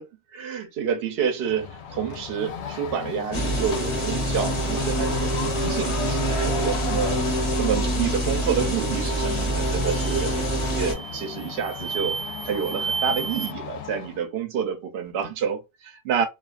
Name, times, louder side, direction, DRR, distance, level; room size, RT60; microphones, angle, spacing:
voice 1, 0.3-7.2 7.6-10.4 10.8-16.3, right 7 dB, 60° right, 0.8 m, -28 dB
sound 1, 1.4-14.2, left 8 dB, 65° left, 0.8 m, -35 dB
sound 2, 3.3-10.9, right 1 dB, 30° left, 0.6 m, -25 dB
sound 3, 9.1-9.4 9.8-10.4 10.9-13.5, right 5 dB, 80° right, 1.0 m, -32 dB
2.4 x 2.3 x 2.3 m
omnidirectional pair, 1.3 m